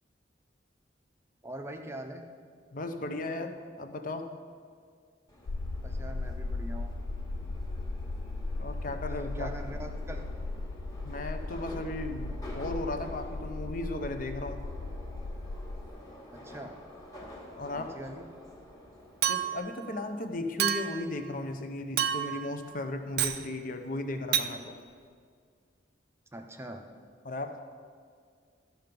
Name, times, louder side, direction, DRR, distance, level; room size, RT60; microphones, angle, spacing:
voice 1, 1.4-2.2 5.8-6.9 9.1-10.2 16.3-16.8 17.7-18.3 26.3-26.8, right 1 dB, 15° right, 4 dB, 0.6 m, -42 dB
voice 2, 2.7-4.4 8.6-9.5 11.0-14.7 17.6-17.9 19.3-24.8 27.2-27.6, left 2 dB, 45° left, 7 dB, 0.7 m, -36 dB
Subway metro underground, 5.3-19.6, left 1 dB, 20° left, 1.4 m, -49 dB
sound 1, 5.5-15.9, left 2 dB, 80° left, 0.5 m, -37 dB
Chink clink, 19.2-19.7 20.6-21.1 22.0-22.5 23.2-23.4 24.3-24.5, right 9 dB, 55° right, 0.4 m, -29 dB
13.5 x 5.7 x 5.3 m, 2.1 s
head